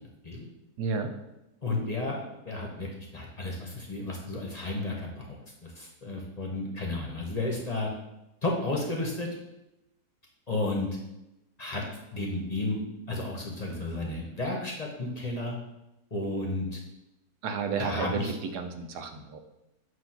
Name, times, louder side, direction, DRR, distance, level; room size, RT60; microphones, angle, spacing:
voice 1, 0.8-1.1 17.4-19.4, right 5 dB, 80° right, 5 dB, 1.3 m, -32 dB
voice 2, 1.6-5.4 5.6-7.9 8.4-9.3 10.5-10.9 11.6-11.8 12.1-12.8 13.1-15.5 16.1-16.8 17.8-18.3, left 2 dB, 30° left, -1 dB, 0.9 m, -32 dB
7.9 x 2.7 x 5.8 m, 0.93 s
omnidirectional pair, 1.7 m